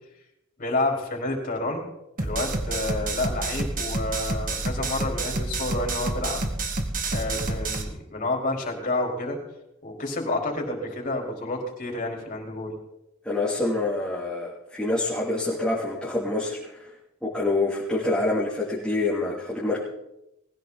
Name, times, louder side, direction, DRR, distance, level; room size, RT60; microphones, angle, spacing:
voice 1, 0.6-1.9 2.2-6.4 7.1-9.4 9.8-12.7, left 2 dB, 40° left, 0 dB, 4.5 m, -29 dB
sound 1, 2.2-7.8, right 2 dB, 45° right, 2.0 m, -29 dB
voice 2, 13.2-16.9 17.2-19.8, left 2 dB, 5° left, -6 dB, 2.9 m, -26 dB
20.5 x 15.5 x 4.1 m, 0.87 s
head